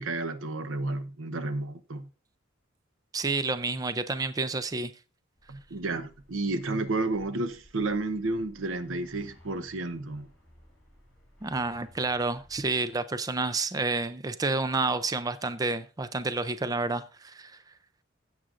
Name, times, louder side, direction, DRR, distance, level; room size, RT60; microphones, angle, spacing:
voice 1, 0.0-2.1 5.5-10.3, right 2 dB, 85° right, 0.9 m, -31 dB
voice 2, 3.1-4.9 11.4-17.6, right 3 dB, 20° right, 0.4 m, -29 dB
sound 1, 5.4-12.7, equal, 5° left, 6.1 m, -58 dB
16.0 x 7.6 x 2.5 m
head